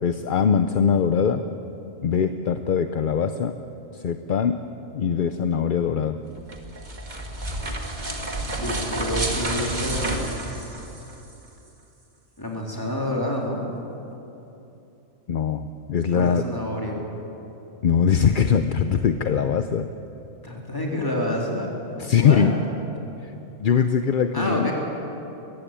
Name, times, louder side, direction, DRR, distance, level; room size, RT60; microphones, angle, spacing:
voice 1, 0.0-1.4 2.0-3.6 3.9-4.6 4.9-6.2 15.3-16.5 17.8-19.9 22.0-22.6 23.2-23.3 23.6-24.7, left 7 dB, 50° left, 9 dB, 0.7 m, -22 dB
sound 1, 6.4-11.3, right 1 dB, 35° right, 1.9 m, -30 dB
voice 2, 8.5-10.5 12.4-13.6 16.1-17.0 20.4-22.6 24.3-24.7, left 1 dB, 15° left, -1 dB, 3.6 m, -28 dB
21.5 x 15.5 x 9.0 m, 3.0 s
omnidirectional pair, 1.3 m